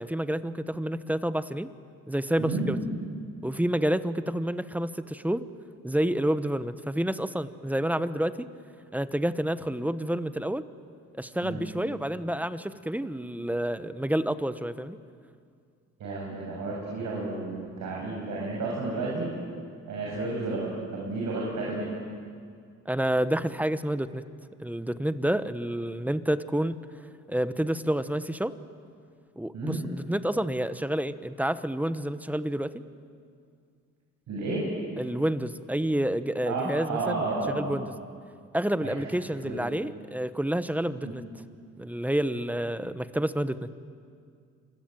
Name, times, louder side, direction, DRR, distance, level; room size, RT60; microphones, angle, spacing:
voice 1, 0.0-1.7 2.1-2.8 3.4-5.5 5.8-8.5 8.9-10.7 11.2-15.0 22.9-24.2 24.6-26.8 27.3-28.5 29.4-32.8 35.0-37.9 38.5-41.2 41.8-43.7, right 1 dB, 5° right, 13 dB, 1.1 m, -29 dB
voice 2, 2.4-2.8 11.4-11.6 16.0-19.3 19.9-21.9 29.5-29.8 34.3-34.7 36.5-37.7 38.8-38.9 39.4-39.6 41.0-41.1, right 3 dB, 70° right, -3 dB, 7.4 m, -31 dB
27.5 x 21.5 x 9.1 m, 2.2 s
cardioid pair, 90°, 30 cm